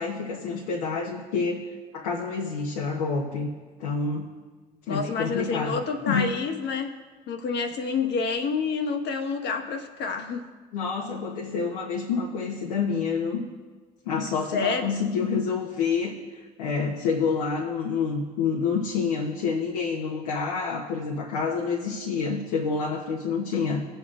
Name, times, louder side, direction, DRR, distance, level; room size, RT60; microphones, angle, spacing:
voice 1, 0.0-3.5 3.8-4.3 4.9-5.8 6.0-6.4 10.7-13.5 14.0-23.9, left 5 dB, 90° left, -1 dB, 1.0 m, -28 dB
voice 2, 4.9-7.0 7.3-10.5 14.5-15.1, left 5 dB, 65° left, 5 dB, 1.4 m, -28 dB
18.0 x 7.9 x 2.5 m, 1.4 s
hypercardioid pair, 60°, 19 cm